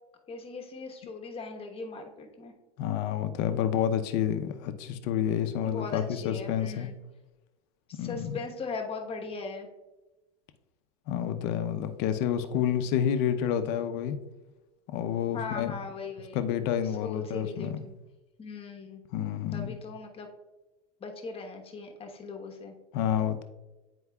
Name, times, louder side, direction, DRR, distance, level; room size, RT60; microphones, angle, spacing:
voice 1, 0.3-2.5 5.6-6.9 7.9-9.7 15.3-16.4 17.0-17.9 18.4-19.0 19.5-20.3 21.0-22.7, left 4 dB, 30° left, 3 dB, 1.2 m, -39 dB
voice 2, 2.8-6.9 7.9-8.4 11.1-14.2 14.9-15.7 16.3-17.8 19.1-19.8 22.9-23.4, left 9 dB, 60° left, 9 dB, 0.7 m, -29 dB
9.5 x 4.6 x 2.3 m, 1.1 s
supercardioid pair, 100°, 20 cm